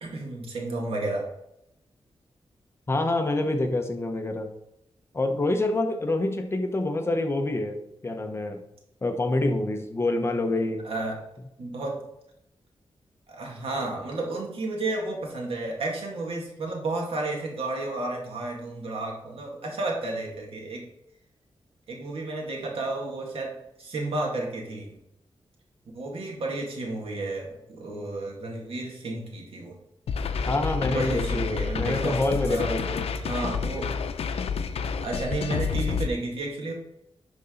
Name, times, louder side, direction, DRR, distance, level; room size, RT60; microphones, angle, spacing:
voice 1, 0.0-1.2 10.8-11.2 11.6-11.9 13.3-20.8 21.9-23.5 23.8-24.9 25.9-29.8 30.9-32.7 33.2-33.9 34.8-36.7, right 2 dB, 70° right, -1 dB, 2.1 m, -32 dB
voice 2, 2.9-4.5 5.1-7.8 8.0-8.6 9.0-10.8 30.5-33.1, left 2 dB, 25° left, 5 dB, 0.8 m, -26 dB
sound 1, 30.1-36.1, left 6 dB, 80° left, 0.6 m, -29 dB
11.0 x 4.0 x 3.9 m, 0.83 s
wide cardioid pair, 145°, 10 cm